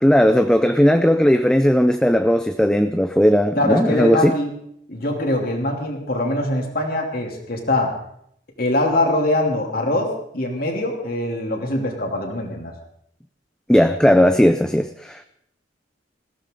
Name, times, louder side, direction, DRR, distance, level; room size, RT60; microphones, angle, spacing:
voice 1, 0.0-4.3 13.7-15.2, equal, 5° left, 8 dB, 0.5 m, -16 dB
voice 2, 3.5-4.5 4.9-7.9 8.6-12.7, left 1 dB, 55° left, 2 dB, 3.0 m, -23 dB
20.5 x 15.5 x 3.8 m, 0.70 s
head